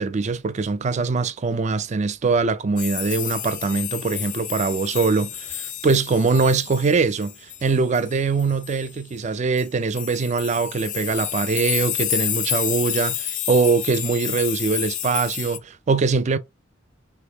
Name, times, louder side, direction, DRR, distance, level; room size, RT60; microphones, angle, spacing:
voice 1, 0.0-7.3 7.6-16.4, right 4 dB, 35° right, 0.4 m, -22 dB
sound 1, 2.8-8.9 9.6-9.7 9.9-15.6, left 12 dB, 45° left, 0.5 m, -30 dB
4.1 x 3.4 x 2.8 m
head